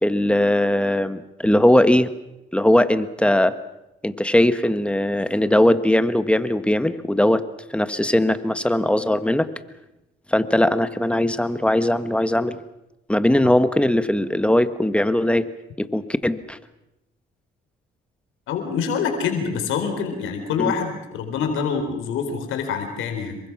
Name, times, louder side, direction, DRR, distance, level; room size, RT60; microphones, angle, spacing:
voice 1, 0.0-2.1 2.5-3.6 4.0-7.4 7.7-9.5 10.3-12.6 13.1-15.5 15.8-16.6 20.6-20.7, left 1 dB, 5° left, 11 dB, 1.4 m, -19 dB
voice 2, 18.5-23.4, left 6 dB, 90° left, 5 dB, 4.2 m, -26 dB
27.5 x 23.5 x 6.1 m, 0.91 s
cardioid pair, 90°, 20 cm